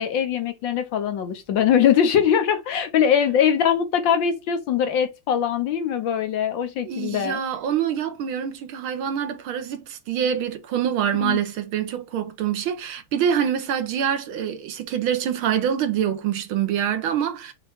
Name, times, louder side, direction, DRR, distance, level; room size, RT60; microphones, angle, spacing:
voice 1, 0.0-7.4 11.2-11.4, left 8 dB, 65° left, 1.4 m, -22 dB
voice 2, 6.9-17.5, right 9 dB, 75° right, 1.7 m, -25 dB
5.7 x 3.4 x 5.0 m
omnidirectional pair, 2.4 m